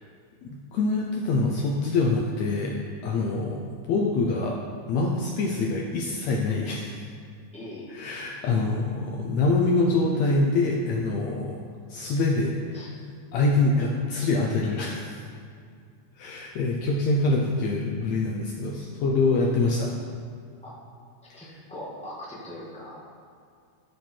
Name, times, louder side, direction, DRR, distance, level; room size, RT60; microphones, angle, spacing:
voice 1, 0.7-3.6 3.9-4.6 4.9-7.1 7.9-11.6 11.9-12.9 13.3-15.2 16.2-19.9, left 3 dB, 75° left, -1 dB, 1.8 m, -25 dB
voice 2, 7.5-8.0 12.7-12.9 20.6-20.8 21.3-23.0, left 1 dB, 10° left, -7 dB, 0.4 m, -40 dB
13.5 x 5.0 x 4.5 m, 2.3 s
omnidirectional pair, 3.7 m